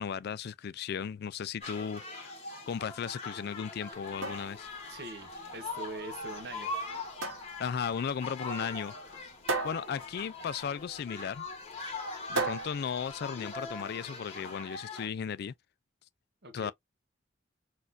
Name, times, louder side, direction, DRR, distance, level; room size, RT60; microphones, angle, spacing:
voice 1, 0.0-2.3 2.7-4.7 7.6-9.3 9.6-11.5 12.3-15.5 16.5-16.7, left 7 dB, 55° left, 0.3 m, -36 dB
sound 1, 1.6-15.1, left 3 dB, 35° left, 1.4 m, -42 dB
sound 2, 3.9-13.9, right 3 dB, 85° right, 0.9 m, -39 dB
voice 2, 4.9-6.7 16.4-16.7, right 3 dB, 60° right, 1.0 m, -43 dB
4.2 x 2.5 x 2.5 m
head